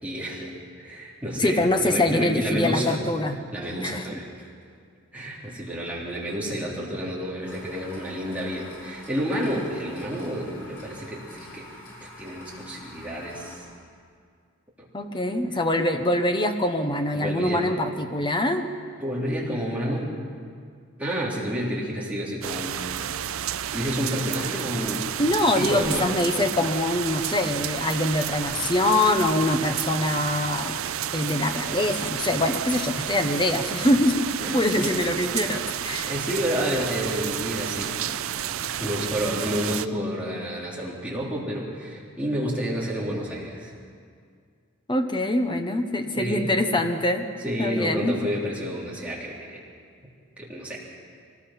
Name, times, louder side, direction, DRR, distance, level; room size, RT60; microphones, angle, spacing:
voice 1, 0.0-3.0 3.5-4.3 5.1-11.7 12.0-13.6 15.0-15.1 17.1-17.7 19.0-20.1 21.0-22.7 23.7-25.1 25.5-26.1 34.4-35.0 36.1-38.2 38.8-43.7 46.1-46.5 47.4-49.6 50.4-50.8, equal, 5° right, -5 dB, 3.2 m, -30 dB
voice 2, 1.4-3.4 3.8-4.1 14.9-18.7 25.2-30.8 31.1-36.1 44.9-47.3 47.6-48.2, left 1 dB, 20° left, 6 dB, 1.0 m, -24 dB
sound 1, 7.4-13.6, left 1 dB, 75° left, 7.0 m, -46 dB
sound 2, 22.4-39.9, right 10 dB, 70° right, 0.5 m, -31 dB
24.0 x 19.5 x 5.8 m, 2.1 s
head